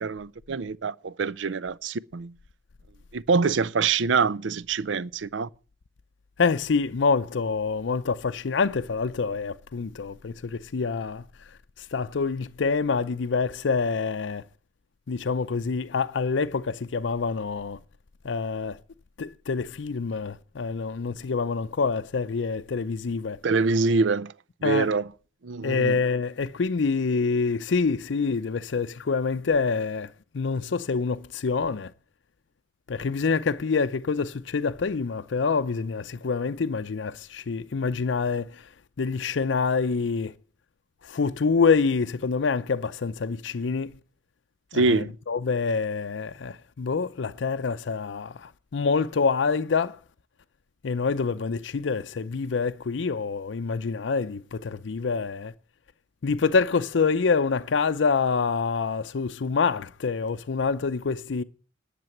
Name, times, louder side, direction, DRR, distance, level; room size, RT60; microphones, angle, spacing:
voice 1, 0.0-2.3 3.1-5.5 23.4-24.3 24.6-25.1 25.4-26.0 44.7-45.1, right 4 dB, 75° right, 0.5 m, -25 dB
voice 2, 6.4-11.2 11.8-14.4 15.1-17.8 18.2-18.8 19.2-23.4 24.6-24.9 25.6-30.1 30.3-31.9 32.9-38.7 39.0-40.3 41.0-43.9 44.7-50.0 50.8-55.5 56.2-61.4, left 5 dB, 70° left, 0.5 m, -26 dB
11.0 x 6.8 x 8.9 m
head